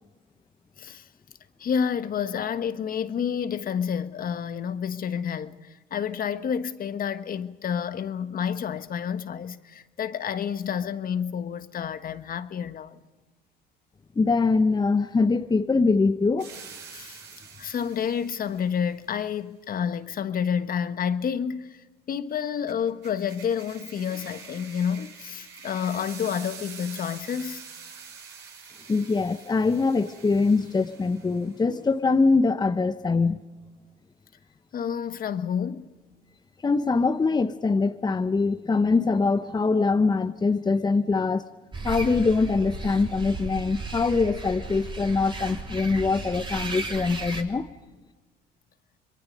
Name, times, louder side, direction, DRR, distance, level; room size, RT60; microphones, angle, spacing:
voice 1, 1.6-13.0 16.9-17.2 17.6-27.6 34.7-35.9, left 7 dB, 50° left, 1.4 m, -29 dB
voice 2, 14.2-16.5 28.9-33.4 36.6-41.5 41.8-47.7, left 4 dB, 20° left, 0.9 m, -23 dB
sound 1, 16.4-18.7 22.7-31.6, right 6 dB, 65° right, 7.3 m, -46 dB
sound 2, 41.7-47.4, right 3 dB, 25° right, 3.4 m, -35 dB
26.0 x 22.0 x 5.3 m
supercardioid pair, 75°, 19 cm